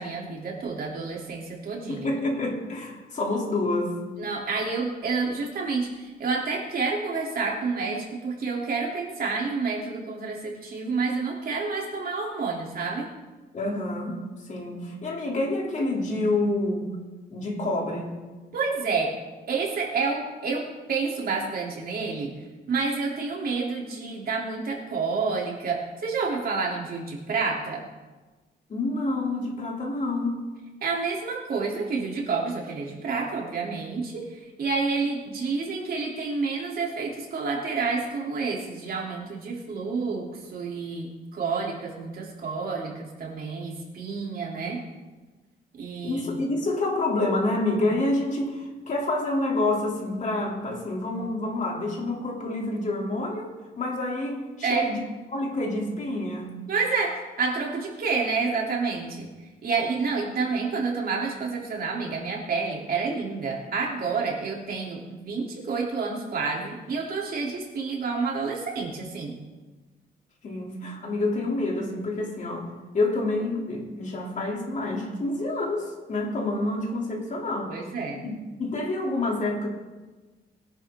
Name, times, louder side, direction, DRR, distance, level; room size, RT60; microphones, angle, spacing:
voice 1, 0.0-2.0 4.1-13.1 18.5-19.1 19.5-22.3 22.7-27.8 30.8-44.8 45.7-46.3 54.6-54.9 56.7-57.1 57.4-59.3 59.6-69.4 77.6-78.2, right 4 dB, 60° right, -2 dB, 3.3 m, -29 dB
voice 2, 1.9-4.0 13.5-16.9 17.3-18.2 28.7-30.4 39.2-39.3 46.0-55.1 55.3-56.6 70.4-72.7 72.9-77.8 78.2-79.7, left 2 dB, 45° left, -1 dB, 3.2 m, -28 dB
21.5 x 11.0 x 3.8 m, 1.2 s
wide cardioid pair, 145°, 18 cm